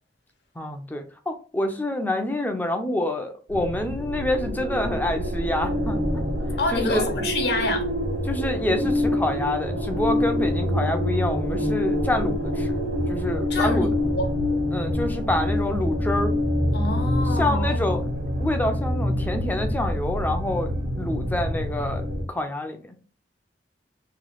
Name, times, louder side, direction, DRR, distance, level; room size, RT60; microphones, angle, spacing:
voice 1, 0.6-6.0 6.7-7.1 8.3-12.8 13.1-13.9 14.7-16.4 17.4-18.0 18.4-22.0 22.3-23.0, left 1 dB, 10° left, 0.5 m, -27 dB
sound 1, 3.5-22.2, left 1 dB, 80° right, 1.1 m, -26 dB
voice 2, 6.6-7.9 13.5-14.3 16.7-17.8, left 2 dB, 65° left, 1.0 m, -27 dB
3.0 x 2.3 x 3.9 m
head